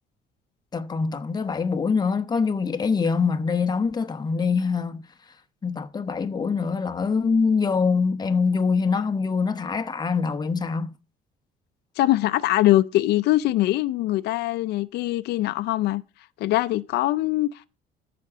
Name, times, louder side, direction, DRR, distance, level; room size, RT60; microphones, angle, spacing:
voice 1, 0.7-5.0 5.6-10.9, left 5 dB, 25° left, 0.9 m, -24 dB
voice 2, 12.0-16.0 16.4-17.7, left 16 dB, 80° left, 0.5 m, -22 dB
14.0 x 6.0 x 3.7 m
cardioid pair, 110°, 17 cm